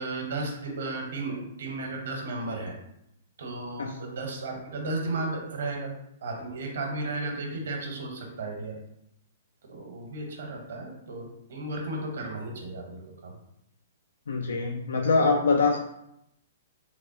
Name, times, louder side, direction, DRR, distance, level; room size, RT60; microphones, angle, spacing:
voice 1, 0.0-2.7 3.4-5.9 6.2-8.8 9.7-13.4, right 2 dB, 70° right, 2 dB, 0.9 m, -34 dB
voice 2, 14.3-15.8, left 4 dB, 80° left, 2 dB, 0.4 m, -24 dB
3.3 x 3.3 x 2.6 m, 0.79 s
hypercardioid pair, 125°, 0 cm